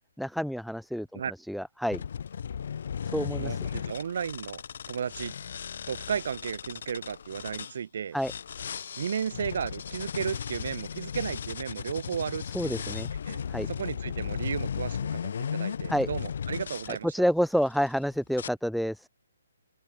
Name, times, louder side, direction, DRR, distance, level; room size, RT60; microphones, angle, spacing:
voice 1, 0.2-1.2 1.5-2.0 3.1-3.5 8.1-8.3 12.5-13.1 13.5-13.7 15.9-16.1 17.1-19.0, equal, ahead, 0.5 m, -28 dB
sound 1, 1.9-7.7 8.2-17.0 17.6-17.9 18.3-18.5, left 7 dB, 60° left, 0.5 m, -36 dB
voice 2, 3.4-4.6 4.9-5.3 5.9-8.2 9.0-13.0 13.3-13.4 13.7-17.1, right 7 dB, 60° right, 3.6 m, -34 dB
hypercardioid pair, 145°, 0 cm